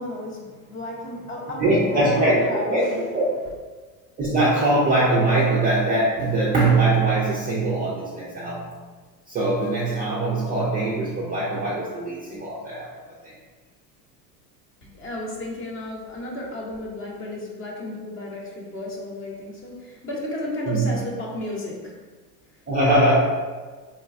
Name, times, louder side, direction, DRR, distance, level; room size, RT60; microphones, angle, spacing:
voice 1, 0.0-3.2 14.8-22.0 22.5-22.6, left 1 dB, 25° left, -2 dB, 0.8 m, -33 dB
voice 2, 1.6-2.9 3.1-3.2 4.2-8.7 9.3-12.9 13.2-13.3 20.7-20.9 22.7-23.2, right 2 dB, 20° right, -6 dB, 0.4 m, -21 dB
4.0 x 2.1 x 2.5 m, 1.4 s
hypercardioid pair, 90°, 50 cm